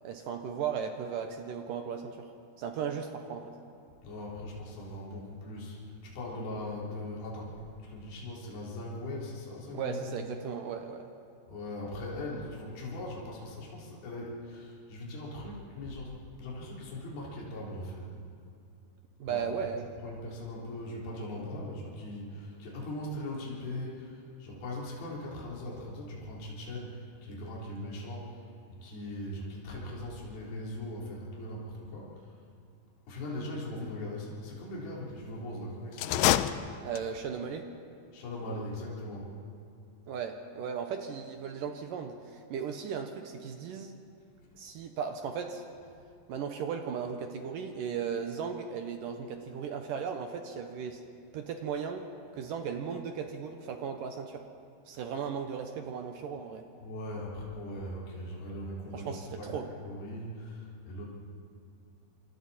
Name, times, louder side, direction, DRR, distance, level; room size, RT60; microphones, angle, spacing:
voice 1, 0.0-2.3 2.6-3.5 9.7-11.1 19.2-19.9 36.8-37.7 40.1-44.0 44.5-45.6 46.3-51.0 51.3-52.1 52.3-54.4 54.9-56.6 58.9-59.7, right 7 dB, 75° right, 5 dB, 2.1 m, -36 dB
voice 2, 4.0-10.2 11.5-18.2 19.3-19.8 20.0-28.5 28.8-32.4 33.1-36.3 38.1-39.3 56.8-61.1, left 1 dB, 65° left, -5 dB, 5.5 m, -40 dB
sound 1, 35.9-37.3, left 13 dB, 85° left, 2.8 m, -27 dB
27.0 x 26.0 x 4.3 m, 2.4 s
omnidirectional pair, 4.9 m